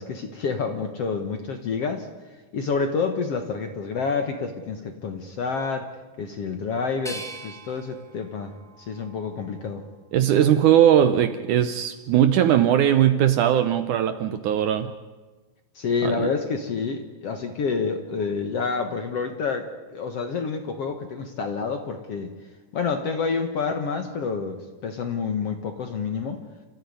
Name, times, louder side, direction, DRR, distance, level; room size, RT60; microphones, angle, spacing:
voice 1, 0.0-2.1 2.5-5.9 6.2-9.8 15.8-22.3 22.7-26.4, left 5 dB, 55° left, 6 dB, 1.8 m, -28 dB
sound 1, 7.0-10.0 10.5-11.3, right 1 dB, ahead, 1.8 m, -43 dB
voice 2, 10.1-14.9 16.0-16.3, right 10 dB, 70° right, 10 dB, 2.0 m, -19 dB
30.0 x 14.0 x 9.7 m, 1.3 s
omnidirectional pair, 4.2 m